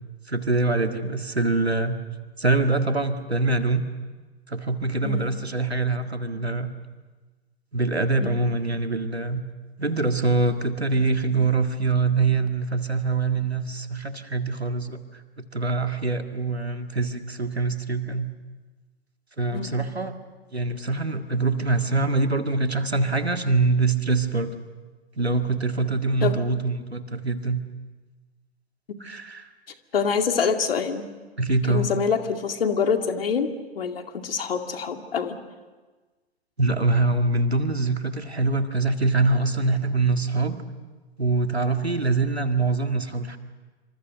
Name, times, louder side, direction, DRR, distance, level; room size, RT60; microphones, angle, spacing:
voice 1, 0.3-2.0 2.4-3.8 4.5-6.7 7.7-9.4 9.8-15.0 15.5-18.3 19.4-20.1 20.5-24.6 25.2-27.6 29.0-29.5 31.4-31.9 36.6-40.6 41.2-43.4, right 3 dB, 90° right, 7 dB, 1.9 m, -24 dB
voice 2, 29.9-31.1 31.7-33.5 33.8-35.4, left 6 dB, 65° left, 6 dB, 2.3 m, -25 dB
27.0 x 26.0 x 6.7 m, 1.3 s
figure-of-eight pair, 105°, 31 cm